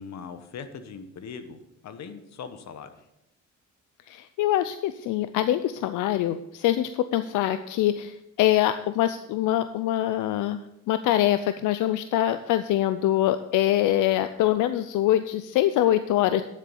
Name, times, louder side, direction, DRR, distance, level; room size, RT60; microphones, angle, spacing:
voice 1, 0.0-2.9, left 6 dB, 65° left, 10 dB, 1.2 m, -40 dB
voice 2, 4.1-10.6 10.9-16.4, left 13 dB, 85° left, 11 dB, 0.5 m, -24 dB
9.9 x 7.3 x 5.3 m, 0.84 s
cardioid pair, 90°, 30 cm